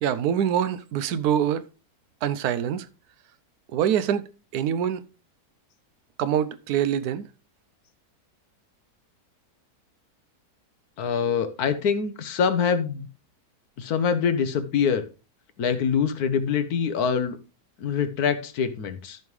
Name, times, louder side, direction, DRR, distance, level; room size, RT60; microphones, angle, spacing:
voice 1, 0.0-1.7 2.2-2.9 3.7-4.3 4.5-5.0 6.2-7.2, right 9 dB, 85° right, 1.1 m, -24 dB
voice 2, 11.0-13.1 13.8-15.0 15.6-17.4 17.8-19.2, left 6 dB, 80° left, 1.4 m, -24 dB
13.5 x 5.3 x 3.2 m
omnidirectional pair, 1.6 m